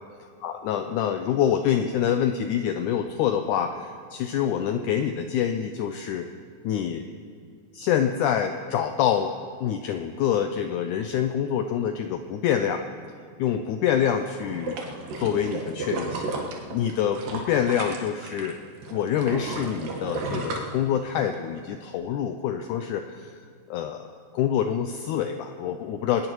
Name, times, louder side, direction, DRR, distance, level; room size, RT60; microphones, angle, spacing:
voice 1, 0.4-6.3 6.6-7.1 7.7-9.3 9.6-12.9 13.4-14.8 15.2-16.3 16.7-18.6 18.9-23.4 23.7-24.1 24.3-26.3, left 9 dB, 90° left, 7 dB, 1.7 m, -26 dB
sound 1, 14.4-18.5 18.8-21.3 21.8-21.9, right 3 dB, 70° right, 3.1 m, -33 dB
20.5 x 19.0 x 3.1 m, 2.2 s
omnidirectional pair, 4.2 m